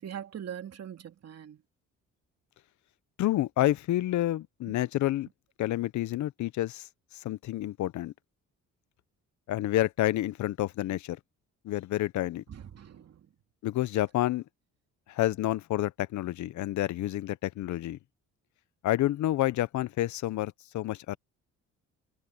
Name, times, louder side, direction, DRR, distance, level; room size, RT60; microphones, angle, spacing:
voice 1, 0.0-1.6 4.7-4.8 12.5-13.3, right 9 dB, 55° right, 2.7 m, -42 dB
voice 2, 3.2-5.3 5.6-6.9 7.2-8.1 9.5-11.2 11.6-12.4 13.6-14.4 15.1-18.0 18.8-21.2, left 14 dB, 70° left, 0.7 m, -29 dB
cardioid pair, 90°, 30 cm